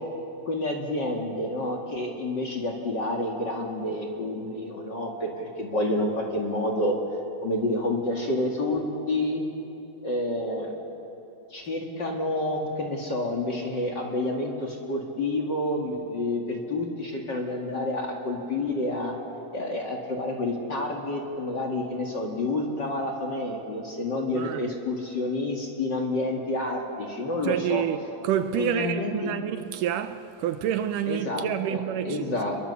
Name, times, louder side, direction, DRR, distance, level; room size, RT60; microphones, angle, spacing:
voice 1, 0.5-7.0 7.4-9.5 10.0-10.8 11.5-19.1 19.5-27.8 28.5-29.3 31.1-32.6, left 1 dB, 35° left, 2.2 m, -29 dB
voice 2, 24.3-24.7 27.4-32.3, right 10 dB, 75° right, 2.2 m, -28 dB
29.0 x 22.0 x 7.0 m
omnidirectional pair, 4.1 m